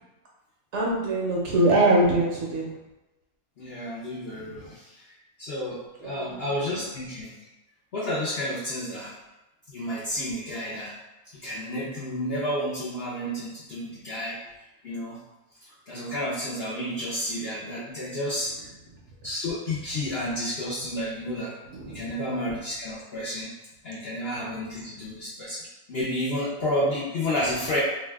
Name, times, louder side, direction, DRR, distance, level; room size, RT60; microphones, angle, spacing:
voice 1, 0.7-2.7 4.3-4.7 6.0-6.5 6.8-6.9 21.6-22.2 24.5-24.6, right 1 dB, 65° right, -3 dB, 0.8 m, -24 dB
voice 2, 3.6-7.3 7.9-9.1 9.7-11.0 11.3-14.4 14.8-15.2 15.9-18.7 19.2-21.5 21.9-23.5 23.8-27.8, left 1 dB, 65° left, -7 dB, 0.6 m, -31 dB
2.6 x 2.2 x 3.3 m, 1.0 s
omnidirectional pair, 1.5 m